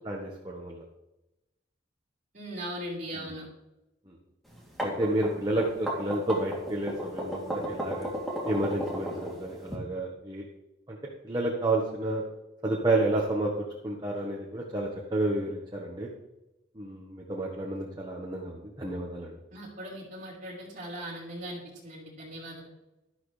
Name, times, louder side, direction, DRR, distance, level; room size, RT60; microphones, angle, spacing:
voice 1, 0.0-0.8 3.1-3.3 4.8-8.1 8.5-10.4 10.9-11.0 11.2-12.2 12.6-13.5 13.8-16.1 16.8-19.3, right 2 dB, 20° right, -2 dB, 1.3 m, -30 dB
voice 2, 2.3-3.5 19.5-22.7, equal, 40° right, -4 dB, 4.5 m, -39 dB
sound 1, 4.5-9.7, equal, ahead, 2.8 m, -34 dB
13.0 x 12.0 x 3.3 m, 0.94 s
head